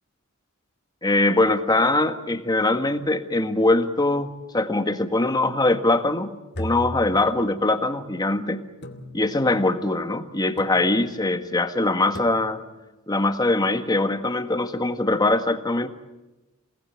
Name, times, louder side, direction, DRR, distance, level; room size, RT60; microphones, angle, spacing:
voice 1, 1.0-6.3 6.6-8.6 9.1-12.6 13.1-15.9, left 2 dB, 20° left, 8 dB, 1.7 m, -22 dB
sound 1, 6.5-7.7 8.8-9.6 10.6-11.2 12.1-12.8, left 1 dB, 55° left, 2.6 m, -38 dB
28.5 x 19.0 x 8.8 m, 1.1 s
head